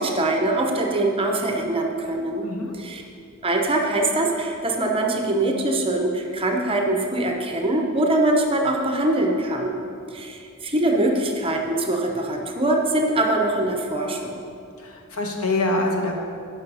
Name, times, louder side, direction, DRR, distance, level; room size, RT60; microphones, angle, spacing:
voice 1, 0.0-2.5 2.8-3.0 3.4-9.8 10.1-14.4, right 2 dB, 25° right, 2 dB, 0.8 m, -23 dB
voice 2, 2.4-2.7 14.8-16.1, left 2 dB, 85° left, 1 dB, 1.2 m, -25 dB
8.5 x 5.6 x 5.5 m, 2.5 s
head